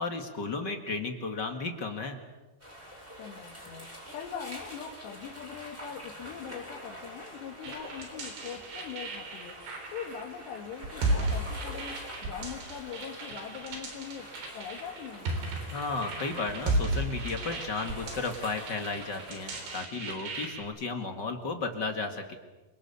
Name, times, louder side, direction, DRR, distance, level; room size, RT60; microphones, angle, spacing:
voice 1, 0.0-2.2 15.7-22.4, left 3 dB, 45° left, 5 dB, 1.5 m, -34 dB
sound 1, 2.6-19.8, equal, 5° right, 7.8 m, -46 dB
voice 2, 3.2-9.6 9.9-15.3, left 8 dB, 85° left, 0 dB, 4.0 m, -42 dB
sound 2, 7.6-20.6, right 2 dB, 75° right, 5.9 m, -35 dB
28.0 x 25.0 x 7.0 m, 1.2 s
omnidirectional pair, 4.8 m